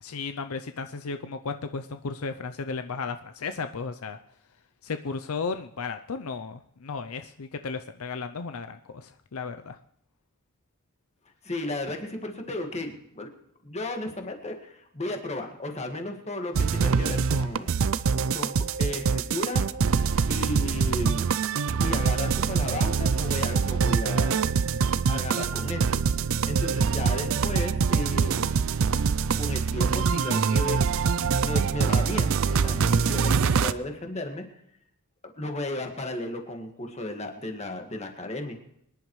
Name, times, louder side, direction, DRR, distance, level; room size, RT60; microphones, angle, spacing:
voice 1, 0.0-4.2 4.8-9.8 20.0-20.3 32.7-33.0, left 4 dB, 75° left, 9 dB, 0.6 m, -35 dB
voice 2, 11.4-13.3 13.6-17.8 18.3-19.7 20.3-21.3 21.8-24.5 25.1-26.0 26.5-28.6 29.4-30.9 31.4-34.4 35.4-38.6, left 1 dB, 30° left, 4 dB, 1.8 m, -34 dB
sound 1, 16.5-33.7, right 5 dB, 65° right, 0.5 m, -24 dB
25.0 x 10.5 x 3.2 m, 0.73 s
head